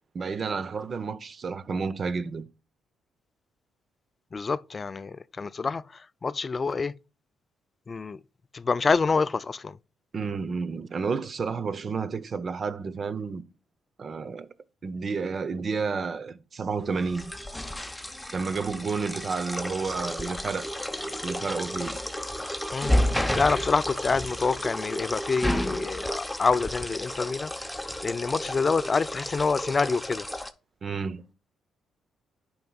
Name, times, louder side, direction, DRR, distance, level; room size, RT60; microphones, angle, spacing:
voice 1, 0.1-2.5 10.1-13.4 14.0-14.5 14.8-17.2 18.3-20.7 21.2-22.0 30.8-31.2, right 5 dB, 45° right, 0.7 m, -31 dB
voice 2, 4.3-6.9 7.9-8.2 8.5-9.8 22.7-23.0 23.3-27.5 28.0-30.3, left 4 dB, 35° left, 0.3 m, -27 dB
sound 1, 16.9-30.5, left 1 dB, 5° left, 0.7 m, -32 dB
10.5 x 4.8 x 2.3 m
cardioid pair, 75°, 0 cm